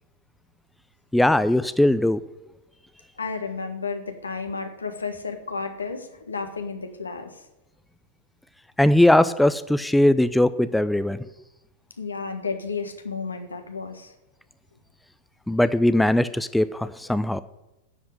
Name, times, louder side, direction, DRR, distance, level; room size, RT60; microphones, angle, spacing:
voice 1, 1.1-2.2 8.8-11.2 15.5-17.4, left 1 dB, 5° left, 14 dB, 0.5 m, -20 dB
voice 2, 3.2-7.3 12.0-14.1, left 4 dB, 75° left, 7 dB, 1.5 m, -32 dB
10.0 x 7.8 x 9.0 m, 0.94 s
figure-of-eight pair, 90°, 0 cm